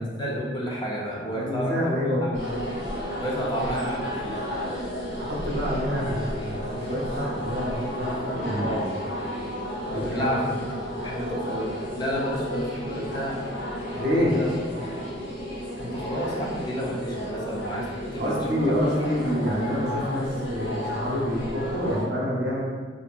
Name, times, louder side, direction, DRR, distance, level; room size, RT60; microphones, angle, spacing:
voice 1, 0.0-1.8 3.2-4.4 8.6-8.9 9.9-11.7 12.0-13.4 14.1-14.5 15.8-17.9 18.1-18.6, equal, 25° left, -3 dB, 0.4 m, -31 dB
voice 2, 1.3-2.4 5.2-8.8 9.9-10.3 13.9-14.5 18.2-22.6, equal, 60° right, -4 dB, 0.7 m, -27 dB
sound 1, 2.3-22.0, equal, 70° left, 0.6 m, -32 dB
2.7 x 2.5 x 2.3 m, 1.5 s
head